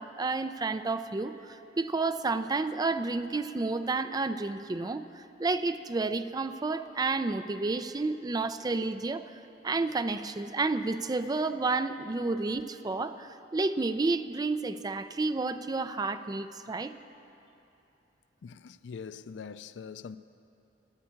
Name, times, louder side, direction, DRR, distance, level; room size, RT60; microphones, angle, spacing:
voice 1, 0.0-16.9, right 3 dB, 20° right, 0.4 m, -31 dB
voice 2, 18.4-20.2, left 6 dB, 70° left, 0.4 m, -43 dB
13.5 x 9.6 x 8.6 m
head